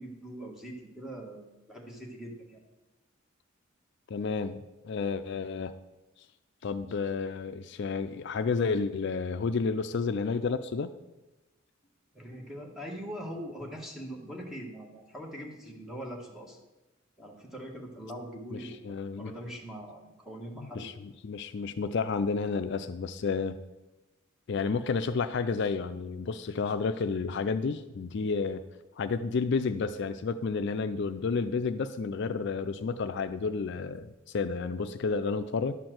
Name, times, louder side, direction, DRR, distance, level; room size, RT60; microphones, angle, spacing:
voice 1, 0.0-2.6 12.1-16.6 17.2-18.8 19.2-20.9, equal, ahead, -1 dB, 1.6 m, -42 dB
voice 2, 4.1-5.8 6.6-10.9 18.5-19.3 20.6-20.9 21.2-23.6 24.5-28.7 29.0-35.7, left 4 dB, 55° left, 10 dB, 0.4 m, -31 dB
11.5 x 4.5 x 7.7 m, 1.1 s
head